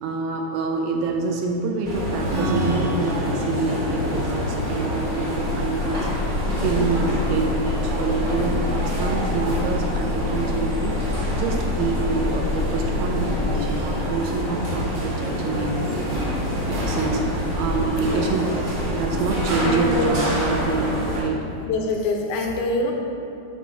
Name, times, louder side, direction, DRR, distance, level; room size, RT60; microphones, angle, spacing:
voice 1, 0.0-6.1 6.6-10.9 11.3-16.1 16.7-18.5 18.9-21.4, right 4 dB, 80° right, 1 dB, 2.2 m, -26 dB
sound 1, 1.8-21.2, equal, 40° right, 1.4 m, -26 dB
Strum, 2.2-7.9, left 2 dB, 60° right, 1.5 m, -33 dB
sound 2, 5.3-13.6, left 5 dB, 65° left, 0.9 m, -28 dB
voice 2, 17.7-18.3 19.6-20.2 21.7-22.9, left 2 dB, 85° left, 1 dB, 2.5 m, -25 dB
8.3 x 3.0 x 5.5 m, 2.6 s
omnidirectional pair, 4.3 m